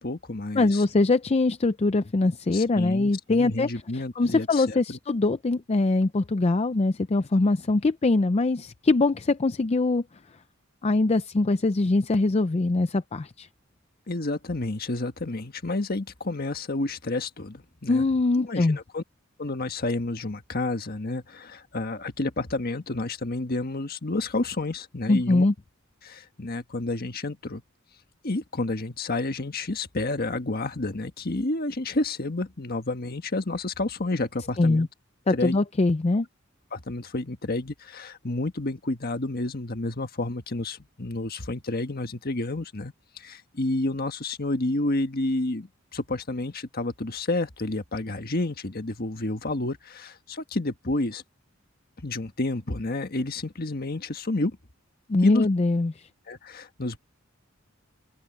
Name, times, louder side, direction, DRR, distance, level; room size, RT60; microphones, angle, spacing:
voice 1, 0.0-0.8 2.5-5.0 14.1-18.1 18.4-19.0 19.4-25.4 26.0-27.6 28.2-34.9 35.3-35.6 36.7-51.2 52.0-54.6 55.2-55.5 56.3-57.0, left 2 dB, 50° left, 1.6 m, -30 dB
voice 2, 0.5-3.7 4.2-10.0 10.8-13.5 17.9-18.8 25.1-25.5 34.6-34.9 35.3-36.3 55.1-56.1, left 2 dB, 30° left, 0.5 m, -23 dB
head